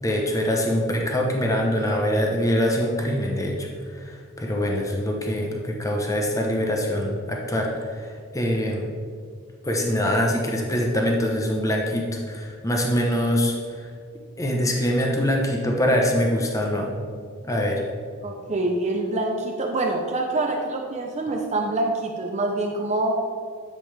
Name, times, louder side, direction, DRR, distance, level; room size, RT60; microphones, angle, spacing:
voice 1, 0.0-8.9 9.6-13.9 14.4-16.9 17.4-17.8, equal, 15° left, 0 dB, 0.9 m, -24 dB
voice 2, 18.2-23.2, right 2 dB, 30° right, 1 dB, 0.7 m, -25 dB
10.5 x 7.6 x 3.4 m, 2.1 s
head